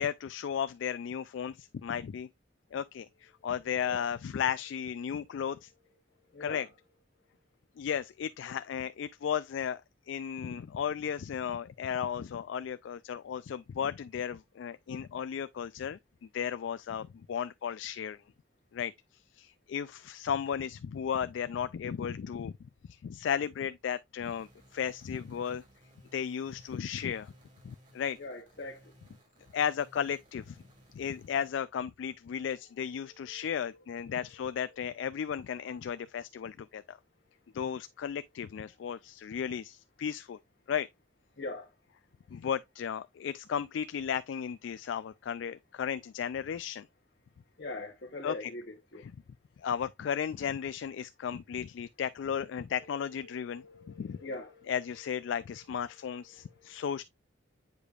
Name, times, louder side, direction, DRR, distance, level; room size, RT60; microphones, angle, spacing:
voice 1, 0.0-2.3 2.7-5.7 6.4-6.7 7.8-9.8 10.1-16.0 16.3-18.2 18.7-18.9 19.3-22.5 22.9-25.6 26.1-27.3 27.6-28.2 29.5-30.6 30.9-37.0 37.5-40.4 40.7-40.9 42.3-46.9 48.2-48.3 49.6-53.6 54.0-54.2 54.7-57.0, left 8 dB, 80° left, 0.3 m, -34 dB
voice 2, 5.0-6.7 7.3-7.4 28.2-28.9 32.9-34.9 37.4-37.5 41.4-41.7 42.3-42.4 47.6-49.1 52.8-57.0, left 2 dB, 55° left, 0.9 m, -45 dB
sound 1, 24.2-31.5, equal, 40° right, 2.2 m, -60 dB
8.1 x 5.0 x 2.4 m
head